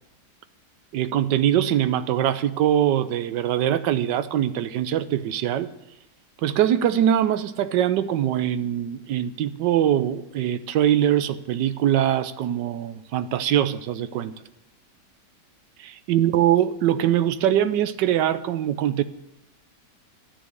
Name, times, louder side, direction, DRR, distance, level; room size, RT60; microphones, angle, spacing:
voice 1, 0.9-5.7 6.4-14.3 15.8-19.0, right 11 dB, 85° right, 1.3 m, -22 dB
12.5 x 6.3 x 9.5 m
omnidirectional pair, 1.8 m